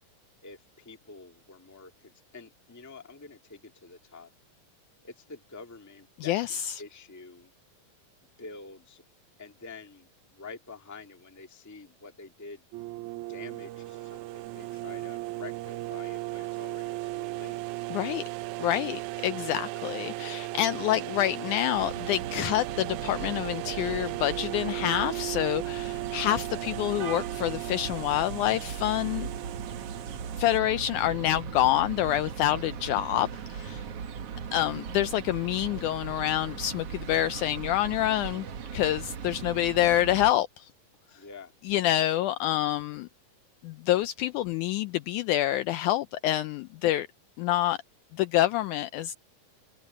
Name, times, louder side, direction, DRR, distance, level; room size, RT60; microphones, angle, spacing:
voice 1, 0.4-4.3 5.0-7.5 8.4-9.0 9.4-12.7 13.3-17.6 34.4-34.8 41.1-41.5, left 4 dB, 10° left, 0.9 m, -47 dB
voice 2, 6.2-6.8 17.9-18.2 18.6-29.3 30.4-33.8 34.5-38.5 38.7-40.7 41.7-43.1 43.6-47.1 47.4-47.8 48.1-49.2, left 13 dB, 80° left, 1.8 m, -27 dB
sound 1, 12.7-30.6, right 18 dB, 80° right, 1.8 m, -36 dB
sound 2, 21.7-40.3, right 7 dB, 55° right, 2.1 m, -38 dB
omnidirectional pair, 3.9 m